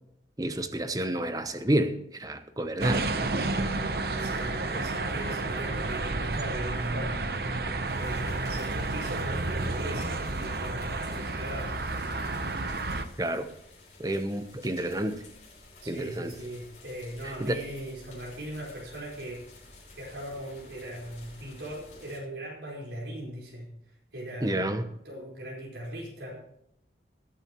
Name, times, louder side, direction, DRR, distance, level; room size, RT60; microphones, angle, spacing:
voice 1, 0.4-3.0 13.2-13.5 14.0-15.2 15.9-16.3 17.2-17.6 24.4-24.8, right 1 dB, 20° right, 9 dB, 0.9 m, -29 dB
sound 1, 2.8-13.1, right 2 dB, 60° right, 0.9 m, -31 dB
voice 2, 3.5-3.8 4.2-7.6 7.9-11.8 15.8-19.5 19.9-23.7 24.1-26.4, right 1 dB, 85° right, -4 dB, 4.7 m, -39 dB
sound 2, 7.9-22.2, left 2 dB, 45° left, 5.9 m, -52 dB
21.0 x 8.9 x 3.0 m, 0.79 s
head